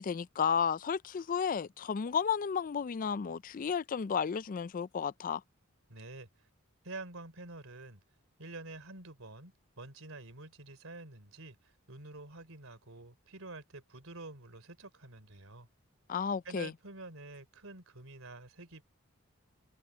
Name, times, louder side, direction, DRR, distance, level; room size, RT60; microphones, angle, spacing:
voice 1, 0.0-5.4 16.1-16.7, left 6 dB, 40° left, 0.4 m, -32 dB
voice 2, 5.9-6.5 6.8-8.0 8.4-15.7 16.5-18.8, right 2 dB, 75° right, 3.5 m, -48 dB
head